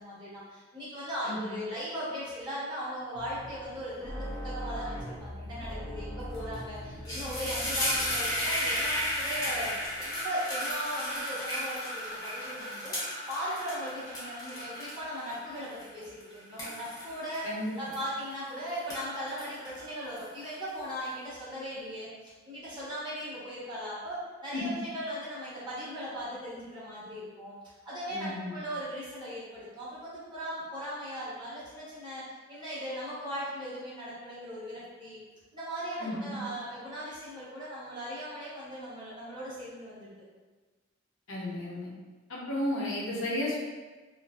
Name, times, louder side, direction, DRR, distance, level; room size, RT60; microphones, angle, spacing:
voice 1, 0.0-13.0 13.3-17.5 17.8-22.1 22.4-27.6 27.8-35.2 35.5-40.2, equal, 20° right, -10 dB, 0.9 m, -38 dB
voice 2, 1.2-1.6 17.4-17.7 24.5-24.6 28.1-28.6 36.0-36.4 41.3-41.9 42.3-43.6, left 1 dB, 70° left, -4 dB, 0.6 m, -33 dB
sound 1, 3.1-10.1, equal, 75° right, 0.8 m, -42 dB
sound 2, 6.3-6.6 6.9-18.4 18.8-20.7, equal, 15° left, 0.7 m, -34 dB
2.7 x 2.4 x 2.3 m, 1.3 s
head